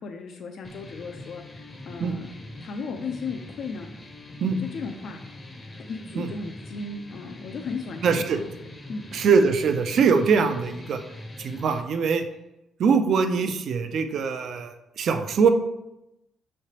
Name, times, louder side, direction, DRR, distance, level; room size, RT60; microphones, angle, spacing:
voice 1, 0.0-2.3 2.6-3.9 4.6-5.2 5.9-8.4 8.9-9.0, left 4 dB, 65° left, 4 dB, 0.4 m, -35 dB
sound 1, 0.6-11.8, left 2 dB, 25° left, 0.6 m, -43 dB
voice 2, 8.0-8.4 9.1-11.0 11.4-12.2 12.8-15.5, right 5 dB, 65° right, 8 dB, 0.4 m, -22 dB
5.8 x 3.2 x 2.8 m, 0.90 s
cardioid pair, 90°, 0 cm